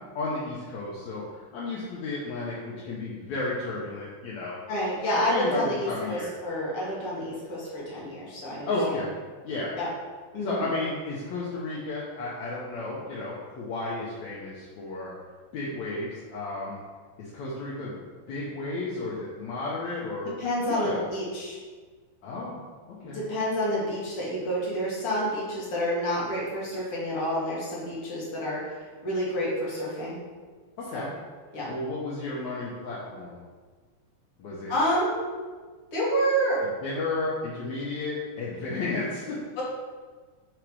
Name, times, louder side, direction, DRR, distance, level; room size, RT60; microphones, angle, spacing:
voice 1, 0.2-1.2 1.5-4.6 5.3-6.3 8.7-9.1 9.4-9.7 10.4-15.1 15.5-16.8 17.2-18.0 18.3-20.3 20.6-21.1 22.2-22.6 22.9-23.2 30.8-31.1 31.7-33.4 34.4-34.7 36.8-39.4, left 2 dB, 70° left, -6 dB, 2.0 m, -33 dB
voice 2, 4.7-9.0 9.8-9.9 10.3-10.6 20.2-21.6 23.0-28.6 29.0-30.2 30.9-31.1 31.5-31.7 34.7-35.1 35.9-36.6 39.6-39.7, equal, 50° left, -6 dB, 2.0 m, -28 dB
5.0 x 4.7 x 4.7 m, 1.5 s
omnidirectional pair, 3.8 m